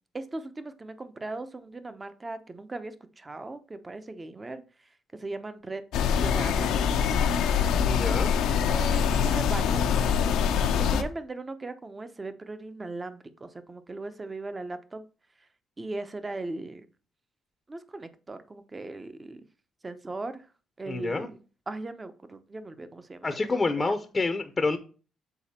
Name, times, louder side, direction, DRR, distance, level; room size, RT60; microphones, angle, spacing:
voice 1, 0.1-4.6 5.1-5.8 6.2-6.8 8.5-9.8 10.7-15.0 15.8-16.9 17.7-19.4 19.8-20.4 20.8-21.4 21.7-23.3 23.7-23.9, right 2 dB, 25° right, 11 dB, 0.8 m, -38 dB
sound 1, 5.9-11.0, left 7 dB, 85° left, 0.7 m, -24 dB
voice 2, 7.8-8.3 20.9-21.3 23.2-24.8, left 3 dB, 25° left, 7 dB, 0.7 m, -28 dB
7.1 x 4.1 x 4.2 m, 0.35 s
cardioid pair, 90°, 0 cm